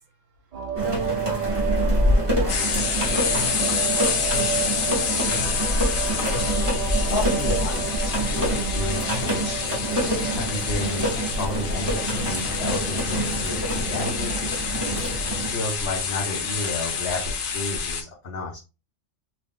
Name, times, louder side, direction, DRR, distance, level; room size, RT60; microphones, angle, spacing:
sound 1, 0.5-17.3, right 8 dB, 45° right, 0.5 m, -33 dB
voice 1, 0.7-5.5 8.2-8.4, right 4 dB, 80° right, 1.2 m, -39 dB
sound 2, 0.8-15.5, equal, 20° right, 1.2 m, -26 dB
sound 3, 2.5-18.0, left 6 dB, 85° left, 1.1 m, -28 dB
voice 2, 7.1-9.6 10.3-14.5 15.5-18.6, left 2 dB, 60° left, 1.0 m, -32 dB
3.0 x 2.6 x 3.5 m
omnidirectional pair, 1.3 m